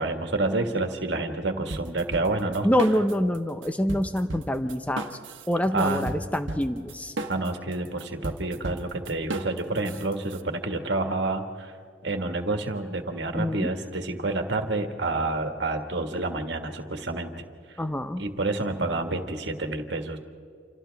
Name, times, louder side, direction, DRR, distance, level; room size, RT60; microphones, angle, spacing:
voice 1, 0.0-2.7 5.7-6.2 7.3-11.7 12.0-17.8 18.2-20.2, right 2 dB, 65° right, 5 dB, 1.7 m, -29 dB
sound 1, 1.7-3.4 3.6-10.4, right 2 dB, 80° right, 1.2 m, -35 dB
voice 2, 2.6-5.2 5.5-7.2 13.3-13.7 17.8-18.2, equal, 5° left, 8 dB, 0.6 m, -26 dB
29.0 x 27.5 x 3.5 m, 2.3 s
head